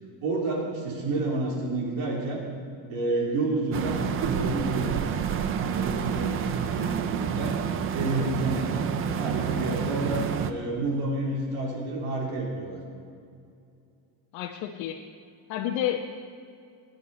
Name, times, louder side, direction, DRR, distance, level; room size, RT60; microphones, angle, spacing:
voice 1, 0.2-2.4 2.9-5.0 5.5-7.6 7.9-12.8, right 2 dB, 80° right, -2 dB, 3.6 m, -29 dB
sound 1, 3.7-10.5, right 8 dB, 30° right, 0.4 m, -29 dB
voice 2, 14.3-15.0 15.5-16.1, left 11 dB, 75° left, 2 dB, 0.9 m, -31 dB
20.5 x 9.4 x 4.2 m, 2.4 s
cardioid pair, 180°, 46 cm